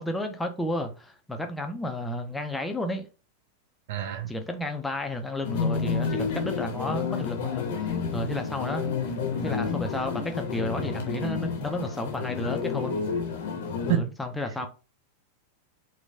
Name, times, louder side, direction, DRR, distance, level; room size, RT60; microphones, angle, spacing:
voice 1, 0.0-3.1 4.3-9.0 9.4-13.0 13.8-14.7, left 1 dB, 5° left, 0.5 m, -32 dB
voice 2, 3.9-4.3 13.9-14.0, right 11 dB, 55° right, 0.8 m, -26 dB
sound 1, 5.4-14.0, left 5 dB, 55° left, 0.8 m, -30 dB
4.3 x 2.3 x 2.6 m
figure-of-eight pair, 90°, 0 cm